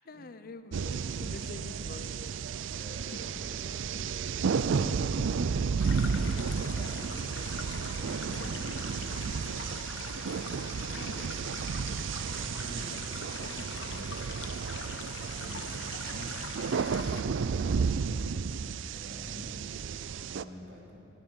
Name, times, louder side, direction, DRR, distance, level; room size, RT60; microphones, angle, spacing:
voice 1, 0.1-2.3 3.1-3.4 10.8-11.6 12.8-13.0, left 3 dB, 50° left, 11 dB, 0.6 m, -47 dB
sound 1, 0.7-20.4, right 5 dB, 80° right, 0.4 m, -32 dB
voice 2, 2.7-9.6 10.4-11.2 12.2-14.1 15.3-18.1 18.4-21.0, equal, 55° right, -2 dB, 3.0 m, -49 dB
sound 2, 5.8-17.2, left 5 dB, 80° left, 1.0 m, -43 dB
12.5 x 12.0 x 8.9 m, 2.7 s
head